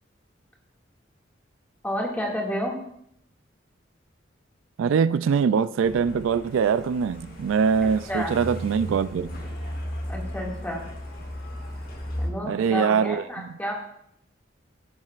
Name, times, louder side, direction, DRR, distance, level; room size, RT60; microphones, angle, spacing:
voice 1, 1.8-2.8 8.1-8.4 10.1-10.8 12.2-13.7, equal, 10° left, 2.1 m, -30 dB
voice 2, 4.8-9.4 12.4-13.5, right 6 dB, 90° right, 0.3 m, -23 dB
Truck, 5.8-12.3, equal, 50° left, 1.5 m, -35 dB
15.5 x 7.4 x 2.5 m
head